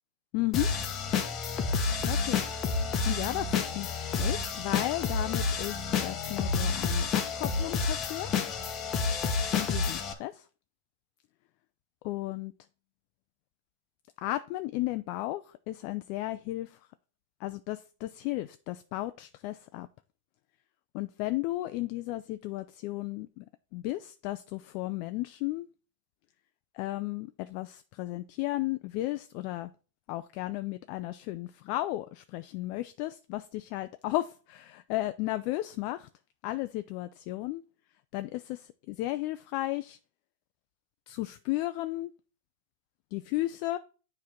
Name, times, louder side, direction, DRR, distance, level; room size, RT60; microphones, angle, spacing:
voice 1, 0.3-0.7 2.1-2.4 2.8-8.3 9.5-10.5 12.0-12.5 14.2-16.8 17.4-19.9 20.9-23.4 23.7-25.7 26.7-29.7 30.1-36.1 36.4-37.6 38.1-40.0 41.1-42.1 43.1-43.8, left 17 dB, 45° left, 0.4 m, -34 dB
sound 1, 0.5-10.1, left 5 dB, 30° left, 1.0 m, -29 dB
7.3 x 3.2 x 5.8 m
hypercardioid pair, 130°, 0 cm